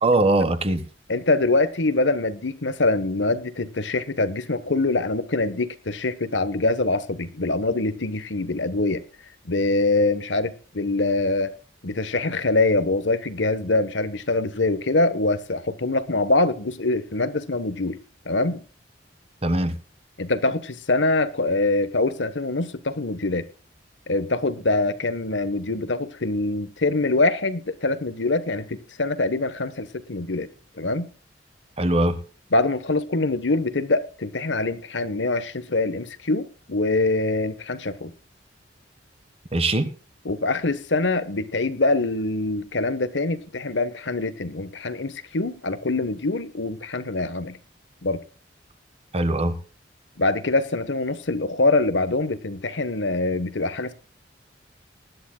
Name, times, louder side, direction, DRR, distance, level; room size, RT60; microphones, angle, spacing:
voice 1, 0.0-0.8 19.4-19.8 31.8-32.2 39.5-39.9 49.1-49.6, right 2 dB, 35° right, 1.3 m, -21 dB
voice 2, 1.1-9.0 9.4-11.5 11.8-18.0 18.2-18.6 20.2-23.5 24.1-30.5 30.8-31.1 32.5-38.1 40.2-47.6 48.0-48.2 50.2-53.9, left 2 dB, 75° left, 1.2 m, -24 dB
19.5 x 11.5 x 2.3 m
head